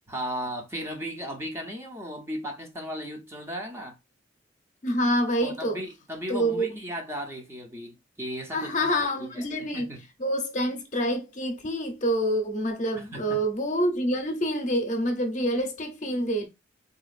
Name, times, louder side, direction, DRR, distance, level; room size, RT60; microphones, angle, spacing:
voice 1, 0.1-4.0 5.4-10.0 12.9-13.4, equal, 15° right, 0.6 m, -36 dB
voice 2, 4.8-5.8 6.3-6.7 8.5-9.9 10.2-16.5, equal, 40° left, 0.7 m, -27 dB
3.9 x 2.4 x 2.4 m
head